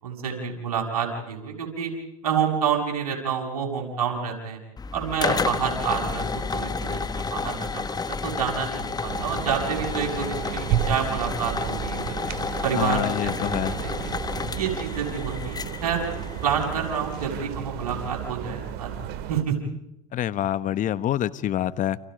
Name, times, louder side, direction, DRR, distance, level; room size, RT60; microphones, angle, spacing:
voice 1, 0.0-1.9 2.2-4.6 4.9-12.2 12.6-13.9 14.5-18.9 19.3-19.6, right 7 dB, 80° right, 1 dB, 7.4 m, -28 dB
sound 1, 4.8-17.3, left 4 dB, 20° left, 1.5 m, -31 dB
sound 2, 9.1-19.4, right 9 dB, 60° right, 2.3 m, -32 dB
voice 2, 12.7-13.7 20.1-22.0, left 11 dB, 45° left, 15 dB, 1.3 m, -26 dB
30.0 x 29.0 x 5.3 m, 0.83 s
hypercardioid pair, 80°, 19 cm